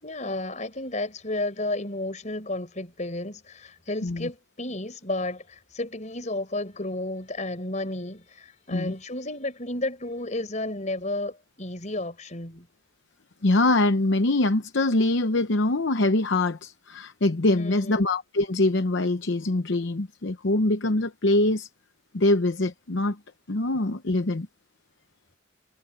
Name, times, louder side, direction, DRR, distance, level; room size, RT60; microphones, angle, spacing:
voice 1, 0.0-12.7 17.6-18.0, left 2 dB, 35° left, 4.7 m, -32 dB
voice 2, 13.4-21.7 22.1-23.2 23.5-24.5, left 2 dB, 60° left, 0.8 m, -23 dB
head